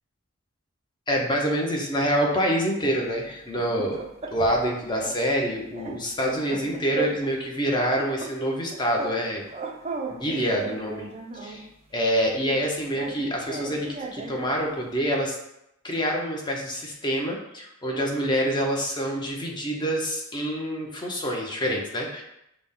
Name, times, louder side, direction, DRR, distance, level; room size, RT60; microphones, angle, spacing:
voice 1, 1.1-4.0 4.3-9.4 10.1-11.1 11.4-11.7 11.9-15.4 15.8-22.2, equal, 20° left, 0 dB, 0.7 m, -26 dB
sound 1, 3.3-4.7 5.0-5.2 5.5-7.4 7.7-9.2 9.5-11.7 12.5-14.5, right 4 dB, 30° right, 0.4 m, -36 dB
5.9 x 2.1 x 3.6 m, 0.82 s
head